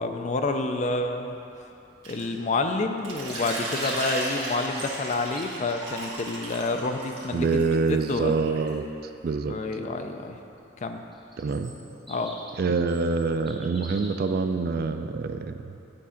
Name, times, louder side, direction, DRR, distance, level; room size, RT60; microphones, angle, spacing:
voice 1, 0.0-1.4 2.1-7.6 7.9-8.3 9.5-10.4 10.8-11.0 12.1-12.3, left 3 dB, 40° left, 6 dB, 0.4 m, -28 dB
sound 1, 2.0-2.4 3.0-6.6, right 3 dB, 80° right, 1.4 m, -44 dB
Water / Liquid, 3.2-8.7, right 1 dB, 30° right, 1.4 m, -35 dB
sound 2, 3.7-5.6 11.1-14.2, right 1 dB, ahead, 0.9 m, -45 dB
voice 2, 7.3-8.8 9.2-9.5 11.4-11.7 12.6-15.7, right 4 dB, 50° right, 8 dB, 0.3 m, -26 dB
9.8 x 3.7 x 5.7 m, 2.8 s
head